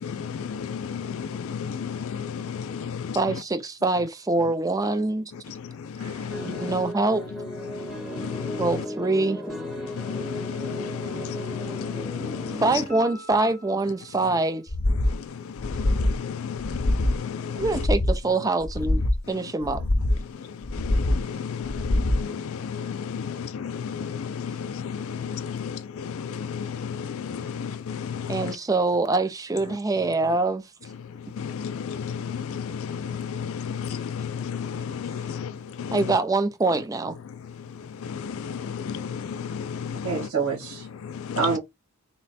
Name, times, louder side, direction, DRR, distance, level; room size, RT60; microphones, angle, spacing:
voice 1, 0.1-2.6 6.0-6.7 8.1-8.6 10.0-12.6 15.6-17.6 20.7-25.4 26.0-28.5 31.4-35.5 35.8-35.9 38.0-40.1 41.0-41.4, left 7 dB, 65° left, 0.4 m, -32 dB
voice 2, 3.1-5.3 6.4-7.2 8.6-9.4 12.6-14.6 17.6-19.8 28.3-30.6 34.8-34.9 35.9-37.2, right 2 dB, 15° right, 0.4 m, -24 dB
voice 3, 6.0-6.4 40.0-40.9 41.4-41.6, right 5 dB, 85° right, 2.4 m, -27 dB
sound 1, 6.3-14.7, equal, ahead, 1.0 m, -37 dB
sound 2, 14.7-15.2 15.6-16.2 16.6-17.2 17.6-18.2 18.6-19.2 19.6-20.2 20.6-21.2 21.6-22.2, left 1 dB, 25° left, 0.6 m, -24 dB
3.9 x 2.2 x 4.1 m
head